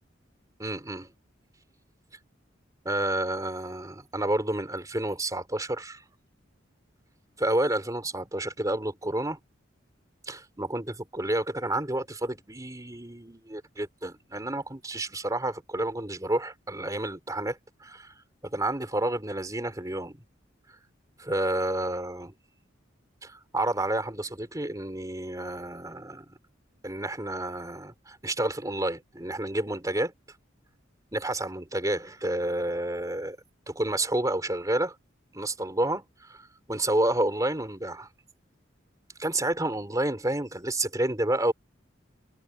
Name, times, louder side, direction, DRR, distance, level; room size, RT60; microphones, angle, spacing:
voice 1, 0.6-1.1 2.8-6.0 7.4-9.4 10.3-18.1 18.4-20.2 21.2-22.3 23.2-26.3 26.8-30.1 31.1-33.4 33.7-35.0 35.3-38.1 39.2-41.5, right 1 dB, 20° right, 3.7 m, -30 dB
head